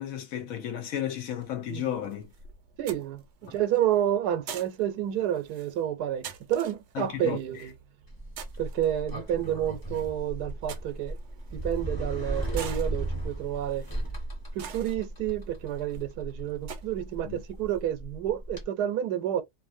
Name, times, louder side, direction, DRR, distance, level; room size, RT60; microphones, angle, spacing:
voice 1, 0.0-2.3 6.9-7.4 17.2-17.4, left 10 dB, 65° left, 1.0 m, -33 dB
sound 1, 1.2-18.0, right 7 dB, 65° right, 0.7 m, -48 dB
voice 2, 2.8-7.7 8.6-11.2 11.5-13.8 14.5-19.4, right 11 dB, 90° right, 1.2 m, -30 dB
Sliding door, 8.1-18.6, right 1 dB, 15° left, 1.0 m, -36 dB
2.7 x 2.5 x 2.5 m
omnidirectional pair, 1.7 m